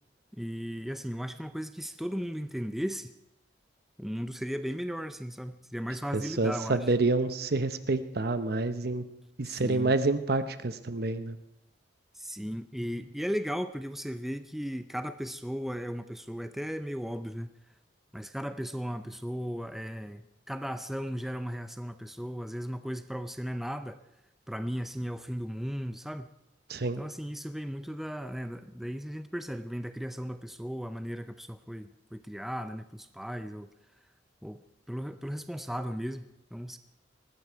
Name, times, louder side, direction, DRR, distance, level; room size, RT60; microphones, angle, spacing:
voice 1, 0.4-3.1 4.0-6.9 9.4-9.9 12.1-17.5 18.1-24.0 24.5-26.3 27.0-33.7 34.4-34.6 34.9-36.8, equal, ahead, 9 dB, 0.5 m, -36 dB
voice 2, 6.1-9.0 9.4-11.4 26.7-27.0, right 3 dB, 55° right, 11 dB, 0.9 m, -28 dB
20.0 x 15.0 x 4.6 m, 0.85 s
head